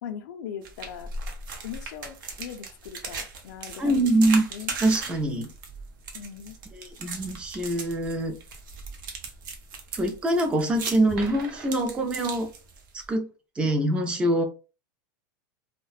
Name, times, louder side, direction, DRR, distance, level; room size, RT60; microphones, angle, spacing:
voice 1, 0.0-1.1 1.6-4.1 4.5-4.7 6.1-6.6, left 8 dB, 75° left, 0.5 m, -39 dB
sound 1, 0.6-13.1, right 4 dB, 85° right, 0.7 m, -38 dB
voice 2, 3.8-4.4 4.8-5.5 6.7-8.4 9.9-12.5 12.9-13.3 13.6-14.4, right 1 dB, 10° right, 0.4 m, -24 dB
2.5 x 2.1 x 2.3 m
supercardioid pair, 165°, 10 cm